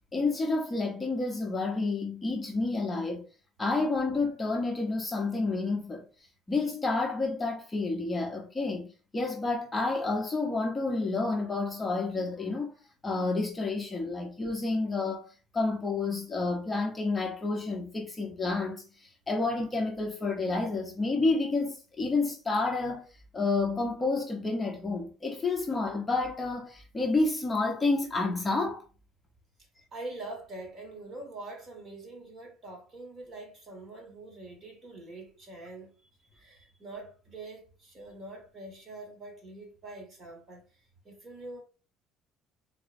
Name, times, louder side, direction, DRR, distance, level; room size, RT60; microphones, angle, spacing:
voice 1, 0.1-3.2 3.6-6.0 6.5-12.7 13.0-23.1 23.3-28.8, left 3 dB, 20° left, 0.7 m, -30 dB
voice 2, 29.6-41.6, right 2 dB, 30° right, 1.5 m, -44 dB
3.8 x 3.0 x 2.5 m
cardioid pair, 130°, 0 cm